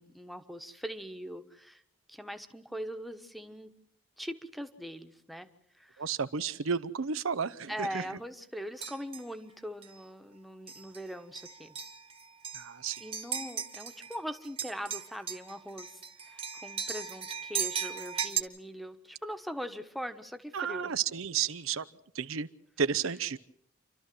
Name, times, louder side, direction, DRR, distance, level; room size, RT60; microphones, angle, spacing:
voice 1, 0.0-1.8 2.1-3.8 4.2-5.5 5.7-6.1 7.7-11.8 13.0-20.9, equal, ahead, 9 dB, 1.1 m, -41 dB
voice 2, 6.0-8.0 12.5-13.0 20.5-21.8 22.1-22.5 22.8-23.4, right 6 dB, 90° right, 13 dB, 0.7 m, -32 dB
sound 1, 8.8-9.3 9.8-10.0 10.7-11.0 11.4-14.2 14.4-18.4, right 7 dB, 30° right, 1.3 m, -37 dB
29.0 x 12.5 x 7.7 m, 0.73 s
head